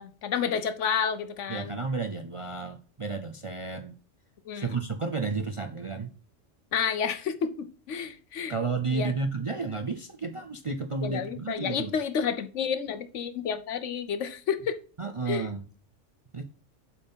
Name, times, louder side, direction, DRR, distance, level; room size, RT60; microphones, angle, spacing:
voice 1, 0.0-1.8 4.5-4.7 6.7-8.5 8.9-9.1 11.0-14.8 15.3-15.5, left 7 dB, 75° left, 11 dB, 1.1 m, -30 dB
voice 2, 1.5-3.9 4.5-6.1 8.5-12.0 15.0-15.6 16.3-16.4, right 4 dB, 40° right, 7 dB, 0.4 m, -32 dB
7.7 x 4.3 x 5.4 m, 0.37 s
omnidirectional pair, 1.3 m